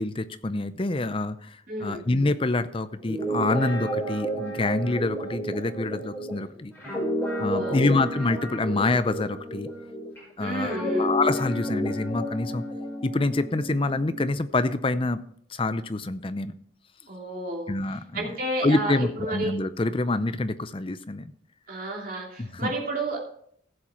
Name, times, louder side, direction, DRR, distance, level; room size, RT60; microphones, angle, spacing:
voice 1, 0.0-6.7 7.4-9.7 10.4-12.6 13.0-15.2 15.5-16.5 17.7-18.3 18.6-21.3 22.4-22.7, left 2 dB, 25° left, 12 dB, 0.6 m, -26 dB
voice 2, 1.7-2.0 7.5-8.0 10.4-11.1 17.1-17.7 18.1-19.5 21.7-23.2, right 1 dB, 45° right, -1 dB, 3.1 m, -31 dB
Guitar, 3.0-10.2 10.6-14.3, equal, 10° left, 5.4 m, -31 dB
15.5 x 7.3 x 4.4 m, 0.65 s
head